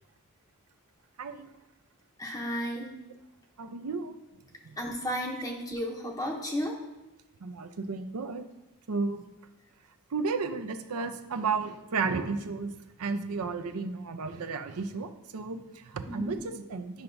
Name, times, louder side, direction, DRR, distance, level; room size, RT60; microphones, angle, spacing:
voice 1, 1.2-1.5 3.6-4.2 4.6-4.8 7.4-8.5 8.9-9.2 10.1-12.7 13.0-17.0, right 4 dB, 85° right, 7 dB, 0.6 m, -33 dB
voice 2, 2.2-2.9 4.8-6.8 16.1-16.4, equal, 15° left, 0 dB, 0.7 m, -33 dB
10.0 x 5.7 x 2.6 m, 1.0 s
head